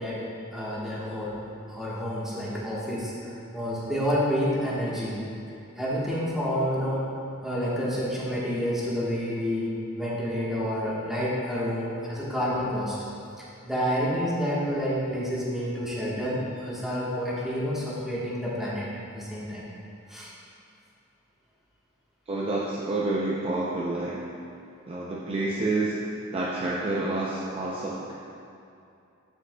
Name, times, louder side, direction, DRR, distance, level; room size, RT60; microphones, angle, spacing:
voice 1, 0.0-1.4 1.7-3.1 3.5-5.2 5.8-7.1 7.4-13.0 13.4-18.9 19.1-19.7 20.1-20.3, equal, ahead, -8 dB, 1.2 m, -29 dB
voice 2, 22.3-24.3 24.9-26.0 26.3-28.1, right 2 dB, 30° right, -5 dB, 0.5 m, -28 dB
7.2 x 6.9 x 2.2 m, 2.6 s
head